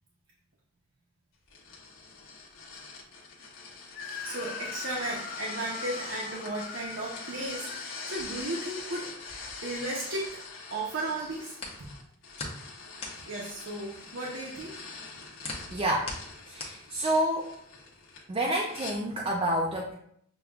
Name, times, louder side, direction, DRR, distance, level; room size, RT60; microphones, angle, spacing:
sound 1, 1.5-19.0, left 4 dB, 85° left, 1.0 m, -44 dB
Screaming, 3.9-8.8, left 5 dB, 45° left, 0.3 m, -42 dB
voice 1, 4.2-9.1 9.6-10.4 10.7-11.6 13.3-14.7, right 2 dB, 65° right, -4 dB, 0.7 m, -35 dB
sound 2, 6.6-10.6 10.9-17.5, left 3 dB, 30° left, 0.7 m, -43 dB
voice 2, 15.7-16.1 16.5-17.5 18.3-19.9, right 1 dB, 25° right, -2 dB, 0.4 m, -28 dB
6.8 x 2.3 x 2.3 m, 0.69 s
head